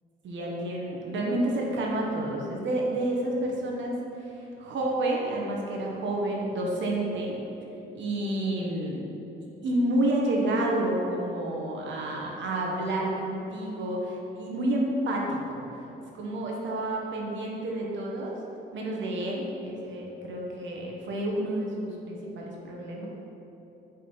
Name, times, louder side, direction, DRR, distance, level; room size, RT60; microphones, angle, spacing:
voice 1, 0.2-7.4 7.9-9.0 9.6-15.7 16.1-18.3 18.7-23.1, right 1 dB, 70° right, -2 dB, 1.2 m, -29 dB
5.6 x 3.7 x 5.5 m, 3.0 s
cardioid pair, 90°, 20 cm